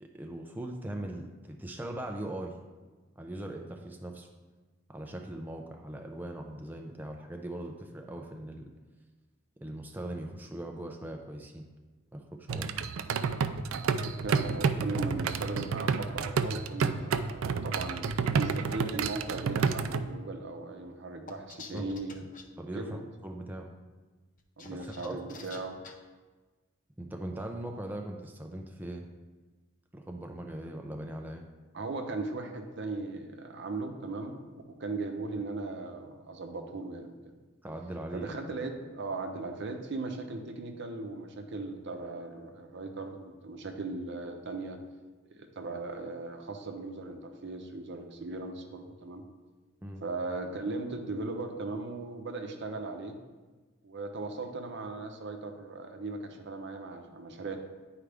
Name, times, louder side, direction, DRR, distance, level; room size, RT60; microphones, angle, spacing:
voice 1, 0.0-2.6 3.2-4.3 4.9-8.7 9.6-11.7 12.1-12.8 21.7-21.9 22.6-23.7 24.7-25.2 27.0-29.1 29.9-31.5 37.6-38.4 49.8-50.0, right 1 dB, 10° right, 2 dB, 0.4 m, -40 dB
sound 1, 12.5-20.0, right 5 dB, 80° right, 0.4 m, -30 dB
voice 2, 14.2-18.1 18.3-22.2 22.7-23.0 24.6-25.8 31.7-37.1 38.1-44.8 45.3-49.2 50.0-53.2 53.8-57.6, right 3 dB, 60° right, 4 dB, 0.8 m, -38 dB
sound 2, 21.3-22.4 24.4-25.9, left 3 dB, 40° left, 0.6 m, -47 dB
9.8 x 4.8 x 3.4 m, 1.3 s
head